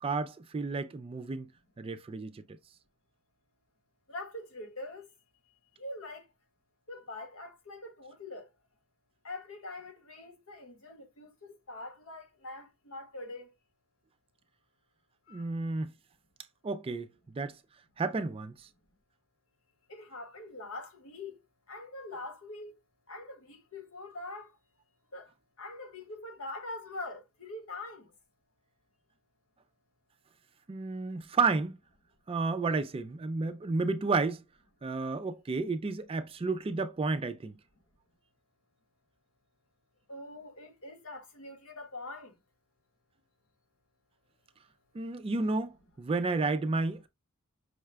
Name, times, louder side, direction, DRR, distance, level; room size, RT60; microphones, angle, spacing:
voice 1, 0.0-1.5 1.8-2.6 15.3-15.9 16.6-17.5 18.0-18.7 30.7-31.8 32.3-34.4 34.8-37.6 44.9-47.1, right 3 dB, 25° right, 0.3 m, -31 dB
voice 2, 4.1-5.1 5.8-6.2 6.9-8.5 9.2-13.5 15.3-15.4 19.9-21.4 21.7-22.7 23.1-24.5 25.1-25.3 25.6-28.1 40.1-42.3, left 2 dB, 70° left, 1.2 m, -43 dB
5.6 x 2.2 x 3.3 m
head